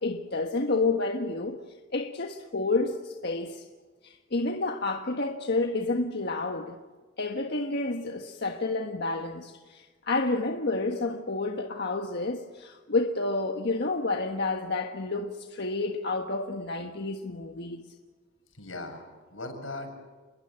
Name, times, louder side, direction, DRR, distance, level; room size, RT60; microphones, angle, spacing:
voice 1, 0.0-1.6 1.9-3.7 4.0-6.8 7.2-17.8, left 3 dB, 60° left, 1.5 m, -30 dB
voice 2, 18.5-19.9, left 2 dB, 90° left, 7.5 m, -39 dB
29.5 x 22.0 x 8.9 m
head